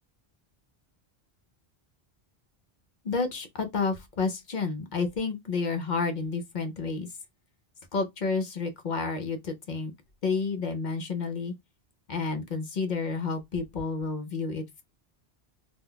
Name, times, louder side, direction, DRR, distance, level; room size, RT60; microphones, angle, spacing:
voice 1, 3.0-7.1 7.9-9.9 10.2-11.5 12.1-14.8, left 4 dB, 55° left, 0.6 m, -30 dB
2.2 x 2.2 x 3.6 m
omnidirectional pair, 1.1 m